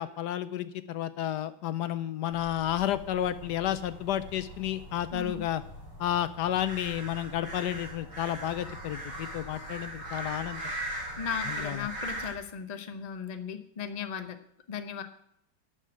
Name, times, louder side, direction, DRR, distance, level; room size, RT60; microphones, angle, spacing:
voice 1, 0.0-5.6 6.0-10.6 11.5-11.9, left 11 dB, 75° left, 14 dB, 1.2 m, -31 dB
sound 1, 2.3-12.3, right 1 dB, 60° right, 4.5 m, -40 dB
voice 2, 5.1-5.4 11.2-14.4 14.7-15.0, left 7 dB, 35° left, 8 dB, 0.7 m, -36 dB
12.0 x 5.1 x 8.8 m, 0.72 s
omnidirectional pair, 1.9 m